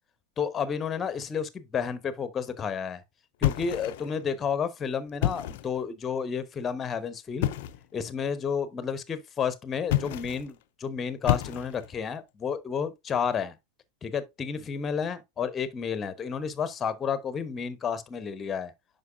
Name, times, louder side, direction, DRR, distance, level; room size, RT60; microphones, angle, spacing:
voice 1, 0.4-3.0 3.4-7.5 7.9-13.5 14.0-18.7, left 6 dB, 20° left, 0.9 m, -31 dB
sound 1, 3.4-4.2 5.1-5.8 7.4-7.9 9.8-10.5 11.3-12.0, left 14 dB, 50° left, 0.5 m, -29 dB
9.5 x 5.4 x 2.5 m
figure-of-eight pair, 90°, 0 cm